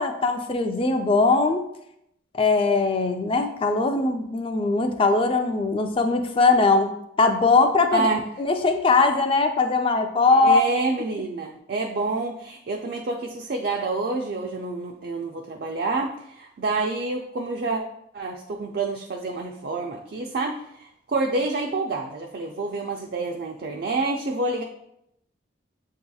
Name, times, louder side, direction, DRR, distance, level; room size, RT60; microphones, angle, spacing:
voice 1, 0.0-1.6 2.3-6.9 7.2-8.1 8.4-10.6, left 3 dB, 30° left, 6 dB, 0.3 m, -20 dB
voice 2, 7.9-8.2 10.3-17.8 18.1-24.6, right 3 dB, 50° right, 2 dB, 0.3 m, -28 dB
7.5 x 2.8 x 2.3 m, 0.79 s
head